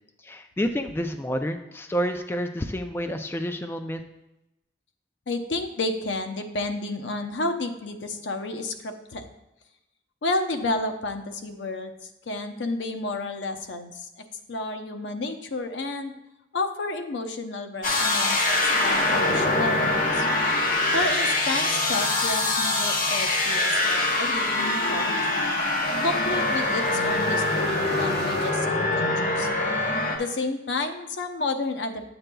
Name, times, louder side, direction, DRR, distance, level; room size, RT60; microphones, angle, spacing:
voice 1, 0.2-4.0, equal, 15° left, 6 dB, 0.3 m, -29 dB
voice 2, 5.3-9.3 10.2-11.9 12.3-16.1 16.5-20.3 20.9-25.2 26.0-29.5 30.1-32.1, left 2 dB, 85° left, 6 dB, 0.7 m, -31 dB
sound 1, 17.8-30.2, left 2 dB, 50° left, 0.9 m, -24 dB
sound 2, 18.2-28.5, right 1 dB, 30° right, 1.7 m, -41 dB
8.7 x 7.8 x 2.3 m, 0.92 s
head